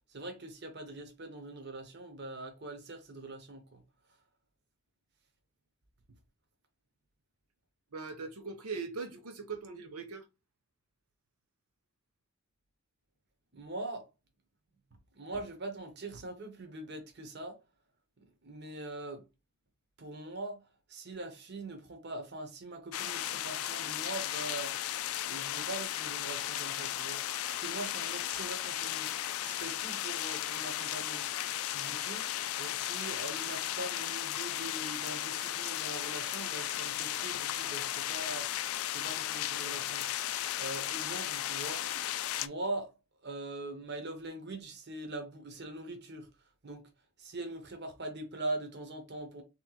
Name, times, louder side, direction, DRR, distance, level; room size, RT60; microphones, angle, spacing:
voice 1, 0.1-3.8 13.5-14.1 15.2-17.6 18.2-19.3 20.0-20.6 20.9-24.8 25.3-29.1 29.4-31.5 31.7-40.1 40.6-41.9 42.4-42.9 43.2-46.3 46.6-46.9 47.2-49.4, right 2 dB, 50° right, 1.0 m, -42 dB
voice 2, 7.9-10.2, right 4 dB, 90° right, 0.8 m, -40 dB
sound 1, 22.9-42.5, left 12 dB, 75° left, 0.4 m, -35 dB
3.5 x 3.0 x 3.9 m
head